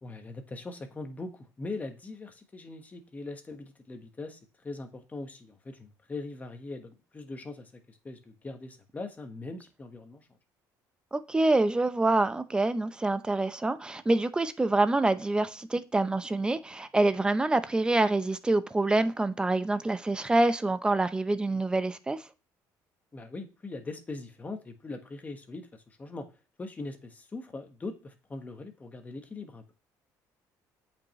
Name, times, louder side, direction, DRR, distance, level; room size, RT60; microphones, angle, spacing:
voice 1, 0.0-4.4 4.6-10.3 23.1-26.3 26.6-29.7, left 3 dB, 20° left, 1.4 m, -41 dB
voice 2, 11.1-22.2, right 2 dB, 10° right, 0.6 m, -26 dB
8.3 x 5.4 x 3.1 m
cardioid pair, 125°, 7 cm